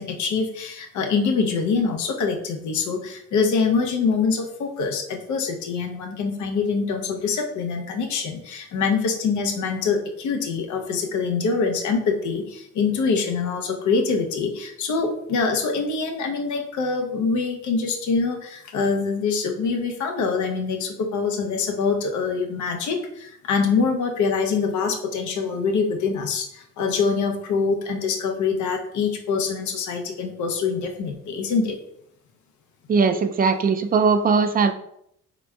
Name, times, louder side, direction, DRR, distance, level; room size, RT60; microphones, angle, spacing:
voice 1, 0.0-31.8, left 5 dB, 75° left, 3 dB, 0.7 m, -24 dB
voice 2, 32.9-34.7, right 5 dB, 30° right, 8 dB, 0.4 m, -19 dB
4.2 x 4.0 x 2.3 m, 0.73 s
cardioid pair, 90°, 30 cm